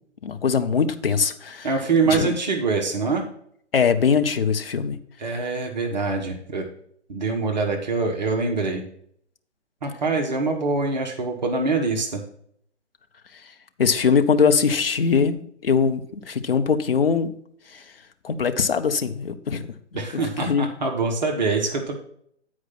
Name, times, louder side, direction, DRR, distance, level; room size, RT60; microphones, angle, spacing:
voice 1, 0.2-1.7 2.0-2.3 3.7-5.0 13.8-17.3 17.7-17.8 18.2-19.7 20.1-20.7, left 6 dB, 50° left, 8 dB, 0.8 m, -22 dB
voice 2, 1.6-3.3 5.2-6.7 7.1-8.8 9.8-12.2 19.9-22.0, right 4 dB, 40° right, 2 dB, 1.2 m, -24 dB
8.6 x 4.8 x 5.7 m, 0.66 s
figure-of-eight pair, 140°, 36 cm